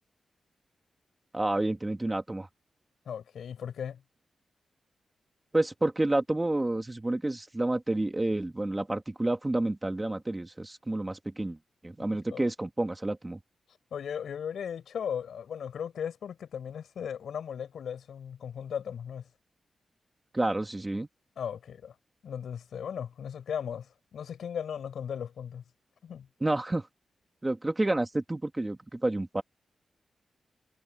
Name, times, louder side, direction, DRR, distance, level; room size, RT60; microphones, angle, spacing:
voice 1, 1.3-2.5 5.5-11.6 11.8-13.4 20.3-21.1 26.4-26.8 27.4-29.4, right 2 dB, 15° right, 2.1 m, -29 dB
voice 2, 3.1-4.0 12.3-12.4 13.9-19.2 21.4-21.9 22.2-25.6 26.0-26.3, left 8 dB, 90° left, 7.5 m, -37 dB
wide cardioid pair, 120°, 0 cm